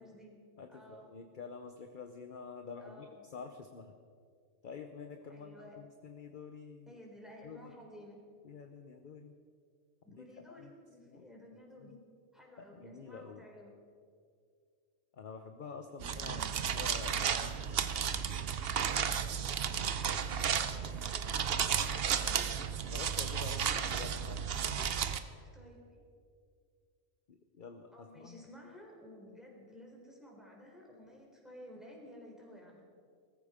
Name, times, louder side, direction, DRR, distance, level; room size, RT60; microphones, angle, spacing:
voice 1, 0.0-0.4 0.7-1.2 2.8-3.3 5.3-5.8 6.9-8.2 10.1-12.0 12.3-13.8 16.2-16.6 20.6-22.6 25.4-25.8 27.9-32.8, left 1 dB, ahead, -2 dB, 3.8 m, -54 dB
voice 2, 0.6-3.9 4.6-7.0 7.4-7.7 8.4-9.3 10.1-10.7 11.1-11.3 11.8-11.9 12.6-13.4 15.1-16.4 16.7-17.9 22.9-24.4 27.3-28.4, left 5 dB, 45° left, 6 dB, 0.9 m, -48 dB
sound 1, 16.0-25.2, right 7 dB, 55° right, 0.9 m, -33 dB
20.0 x 14.0 x 5.0 m, 2.2 s
omnidirectional pair, 1.3 m